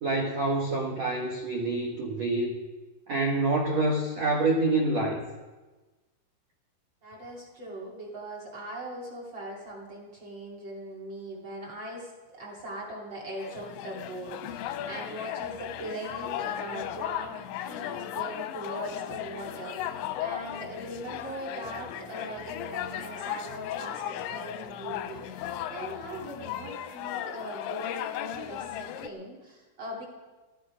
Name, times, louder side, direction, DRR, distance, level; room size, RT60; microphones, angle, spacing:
voice 1, 0.0-2.6 3.1-5.2, right 2 dB, 70° right, 1 dB, 1.6 m, -27 dB
voice 2, 7.0-17.4 17.6-30.0, right 1 dB, 30° right, -3 dB, 2.8 m, -40 dB
sound 1, 13.4-29.1, left 11 dB, 90° left, 3.0 m, -36 dB
15.0 x 14.0 x 5.1 m, 1.2 s
omnidirectional pair, 5.3 m